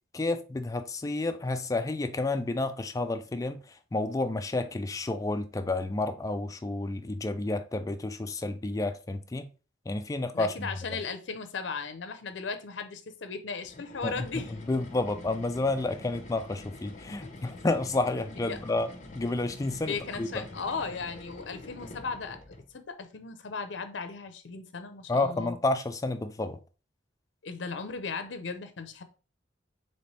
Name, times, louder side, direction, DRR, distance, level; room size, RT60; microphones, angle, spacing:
voice 1, 0.1-9.5 9.9-10.7 14.0-14.3 14.7-18.9 19.1-20.5 25.1-26.6, left 2 dB, 20° left, 0.3 m, -30 dB
voice 2, 10.3-14.5 18.4-18.6 19.9-22.4 22.7-25.6 27.4-29.0, left 4 dB, 70° left, 0.6 m, -36 dB
sound 1, 13.6-22.7, left 2 dB, 40° left, 0.8 m, -46 dB
4.3 x 3.0 x 3.1 m
head